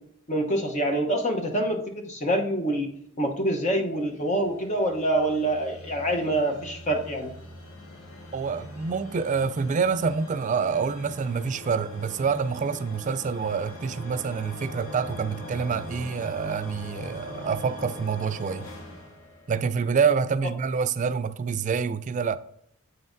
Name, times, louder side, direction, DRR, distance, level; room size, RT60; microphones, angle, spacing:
voice 1, 0.3-2.9 3.2-7.3, right 1 dB, 35° left, 0.9 m, -26 dB
sound 1, 3.9-20.1, left 1 dB, 80° left, 1.5 m, -42 dB
voice 2, 8.3-18.7 19.5-22.4, right 5 dB, 35° right, 0.3 m, -27 dB
8.0 x 5.5 x 2.6 m
head